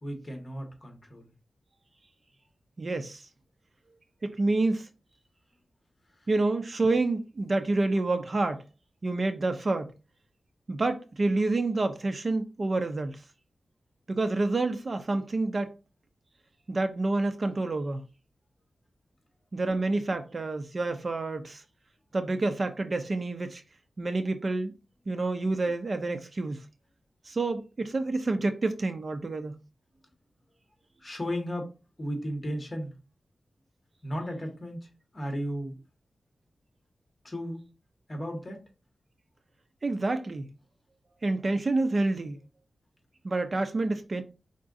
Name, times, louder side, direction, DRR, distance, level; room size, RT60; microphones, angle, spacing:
voice 1, 0.0-1.3 6.1-6.3 31.0-32.9 34.0-35.8 37.2-37.7 38.1-38.6, equal, 30° left, 1.5 m, -35 dB
voice 2, 2.8-3.3 4.2-4.9 6.3-8.6 9.0-9.9 10.7-13.2 14.1-15.7 16.7-18.0 19.5-21.6 22.1-23.6 24.0-24.7 25.1-26.6 27.2-29.6 39.8-40.5 41.2-42.4 43.2-44.2, right 2 dB, 40° right, 0.5 m, -28 dB
4.7 x 3.7 x 2.6 m
wide cardioid pair, 130°, 0 cm